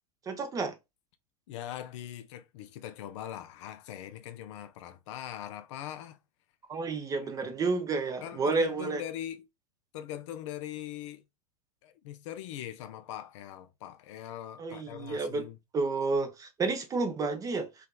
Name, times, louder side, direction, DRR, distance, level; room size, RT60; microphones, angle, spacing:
voice 1, 0.3-0.7 6.7-9.0 14.6-15.5 15.7-17.7, right 3 dB, 20° right, 0.4 m, -30 dB
voice 2, 1.5-6.2 7.2-7.3 8.2-9.5 9.9-11.2 11.8-15.6, left 11 dB, 50° left, 0.4 m, -41 dB
2.7 x 2.3 x 2.2 m
figure-of-eight pair, 90°, 20 cm